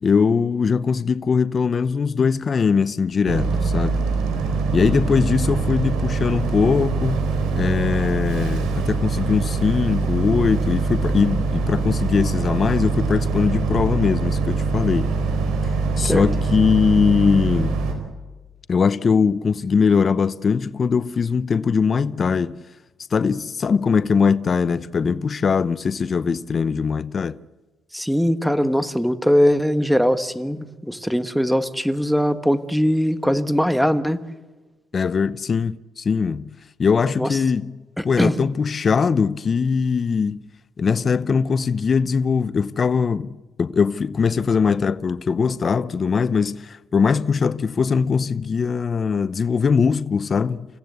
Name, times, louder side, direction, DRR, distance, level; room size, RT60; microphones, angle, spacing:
voice 1, 0.0-4.0 4.7-7.2 7.5-15.1 15.6-17.8 18.7-22.6 23.1-27.4 34.9-37.8 38.0-40.4 40.8-50.7, left 5 dB, 45° left, 0.7 m, -21 dB
Boat Water vehicle, 3.3-17.9, right 4 dB, 90° right, 4.4 m, -23 dB
voice 2, 27.9-34.2 37.2-37.4 38.0-38.3, equal, ahead, 1.4 m, -21 dB
29.5 x 15.5 x 8.2 m
cardioid pair, 90°, 0 cm